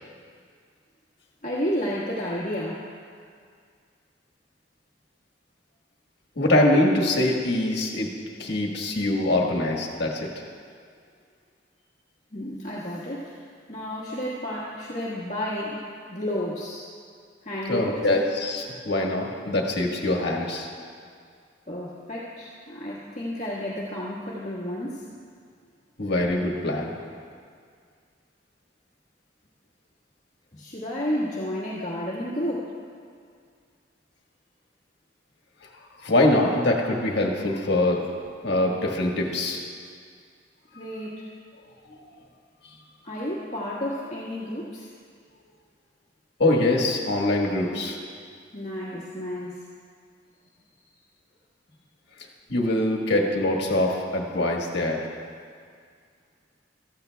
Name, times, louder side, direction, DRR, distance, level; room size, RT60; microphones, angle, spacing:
voice 1, 1.4-2.8 12.3-13.4 13.7-15.8 16.1-16.9 17.4-18.0 21.7-25.0 30.5-32.7 40.7-41.1 43.0-44.9 48.5-49.5, equal, 40° left, -7 dB, 1.6 m, -31 dB
voice 2, 6.3-8.1 8.4-10.3 17.7-20.7 26.0-26.9 35.6-35.7 36.0-38.0 38.4-39.6 46.4-48.0 52.5-55.1, left 1 dB, 65° left, 0 dB, 1.5 m, -23 dB
15.0 x 13.5 x 2.3 m, 2.1 s
head